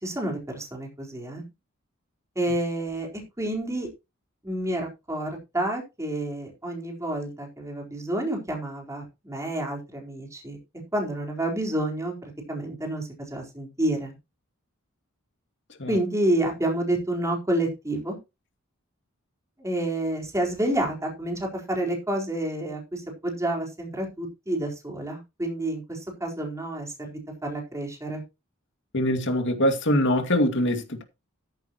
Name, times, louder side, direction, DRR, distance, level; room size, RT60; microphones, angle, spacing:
voice 1, 0.0-1.4 2.4-3.9 4.4-10.6 10.9-12.1 12.5-14.2 15.9-18.2 19.6-28.2, right 1 dB, 15° right, 4.2 m, -29 dB
voice 2, 28.9-31.0, equal, 60° left, 2.4 m, -23 dB
14.5 x 9.2 x 3.1 m
head